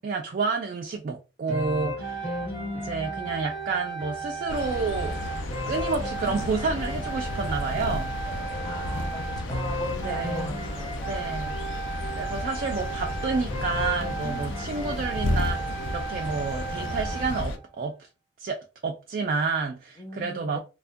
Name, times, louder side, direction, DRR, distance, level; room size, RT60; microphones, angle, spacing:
voice 1, 0.0-2.4 2.9-8.1 10.0-10.6 11.0-11.6 12.1-18.1 18.4-20.6, right 4 dB, 45° right, 0.3 m, -30 dB
sound 1, 1.5-17.5, right 2 dB, 60° left, 1.1 m, -34 dB
voice 2, 2.4-3.4 8.6-11.4 20.0-20.6, left 1 dB, 20° left, 0.5 m, -39 dB
sound 2, 4.5-17.6, left 2 dB, 85° left, 0.4 m, -33 dB
2.3 x 2.1 x 2.5 m
head